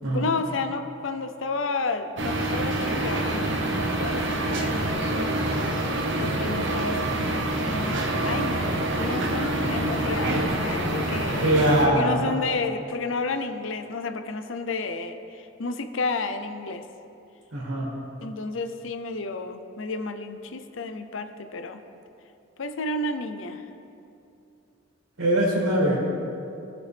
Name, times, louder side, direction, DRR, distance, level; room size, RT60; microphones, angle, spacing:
voice 1, 0.1-5.7 6.2-7.5 8.2-8.7 9.0-16.8 18.2-21.8 22.6-23.6, left 3 dB, 70° left, 9 dB, 0.6 m, -31 dB
sound 1, 2.2-11.9, right 1 dB, 60° right, 1.1 m, -26 dB
voice 2, 11.4-12.2 17.5-17.9 25.2-26.0, right 1 dB, 90° right, -4 dB, 2.2 m, -22 dB
18.0 x 6.2 x 3.4 m, 2.7 s
head